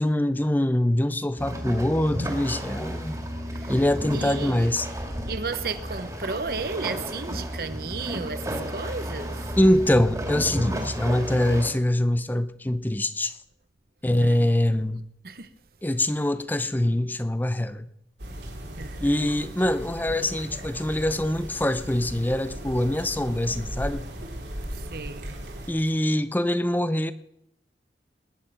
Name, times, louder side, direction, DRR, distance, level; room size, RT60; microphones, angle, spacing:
voice 1, 0.0-3.2 3.7-4.9 9.6-13.4 14.0-15.0 15.8-17.9 19.0-24.1 25.7-27.1, left 1 dB, 10° left, 0.5 m, -24 dB
sound 1, 1.4-11.7, equal, 20° right, 2.2 m, -33 dB
voice 2, 3.5-3.8 4.1-4.7 5.3-9.5 14.2-14.8 15.2-15.5 18.8-19.5 24.7-25.3, right 4 dB, 55° right, 0.9 m, -34 dB
sound 2, 18.2-25.7, equal, 75° right, 3.4 m, -37 dB
20.0 x 9.9 x 5.8 m
head